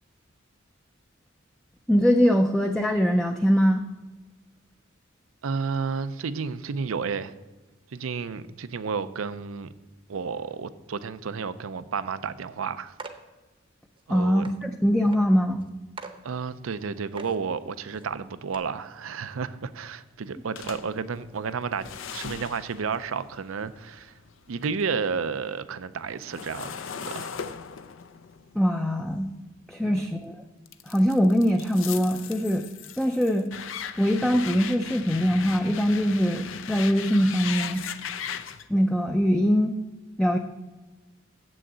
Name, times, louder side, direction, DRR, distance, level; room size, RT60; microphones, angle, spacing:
voice 1, 1.9-3.8 14.1-15.7 28.6-29.3 29.7-30.4 30.9-32.7 33.0-33.5 34.0-37.9 38.7-39.7 40.2-40.4, equal, 5° left, 0.4 m, -22 dB
voice 2, 5.4-7.3 7.9-9.7 10.1-12.9 14.1-14.5 16.2-21.9 22.1-24.1 24.5-26.8 27.0-27.4 29.8-30.1, right 5 dB, 90° right, 0.5 m, -31 dB
sound 1, 13.0-13.2 14.0-14.1 14.4-14.6 15.1-15.2 15.6-15.7 16.0-16.2 16.7-16.8 17.1-17.4 17.9-18.1 18.5-18.6, right 3 dB, 25° right, 0.7 m, -41 dB
sound 2, 20.6-24.8 25.2-30.1 30.7-38.7, left 7 dB, 70° left, 0.5 m, -38 dB
7.7 x 6.3 x 8.0 m
head